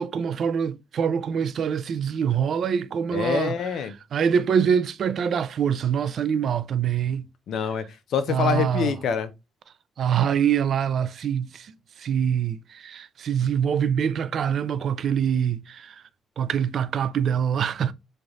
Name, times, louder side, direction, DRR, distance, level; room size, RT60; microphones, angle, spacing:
voice 1, 0.0-3.6 4.1-7.3 8.3-8.9 10.0-11.7 12.0-15.9 16.4-17.9, right 8 dB, 60° right, 0.3 m, -24 dB
voice 2, 3.1-3.9 7.5-7.8 8.1-9.3, left 7 dB, 70° left, 0.6 m, -25 dB
3.3 x 2.4 x 3.8 m
cardioid pair, 90°, 0 cm